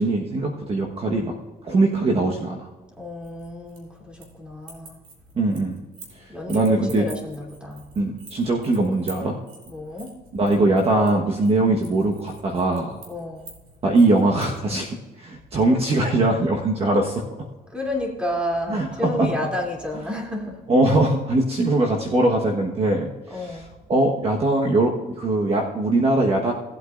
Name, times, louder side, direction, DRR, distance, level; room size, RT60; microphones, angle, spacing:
voice 1, 0.0-1.3 1.6-2.7 5.3-5.8 6.5-7.0 8.0-9.4 10.3-13.0 13.8-17.2 18.7-19.3 20.7-23.6 23.9-26.5, right 2 dB, 35° right, 0 dB, 1.3 m, -21 dB
voice 2, 3.0-5.0 6.3-7.8 9.6-10.1 13.1-13.5 17.7-20.6 23.3-23.7, left 1 dB, 5° right, -1 dB, 2.9 m, -31 dB
sound 1, 3.2-4.4 4.6-6.2 6.5-14.6, right 3 dB, 60° right, 3.6 m, -45 dB
18.0 x 8.4 x 2.6 m, 1.2 s
cardioid pair, 110°, 17 cm